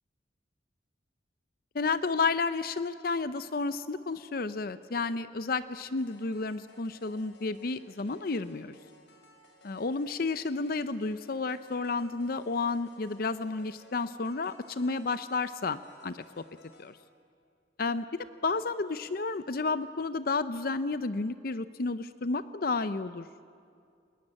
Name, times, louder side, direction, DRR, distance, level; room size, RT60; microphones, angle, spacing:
voice 1, 1.7-8.8 9.6-16.4 16.8-17.0 17.8-23.4, left 3 dB, 55° left, 13 dB, 0.6 m, -31 dB
sound 1, 6.0-17.0, left 2 dB, 80° left, 4.1 m, -59 dB
29.5 x 20.5 x 8.8 m, 2.4 s
head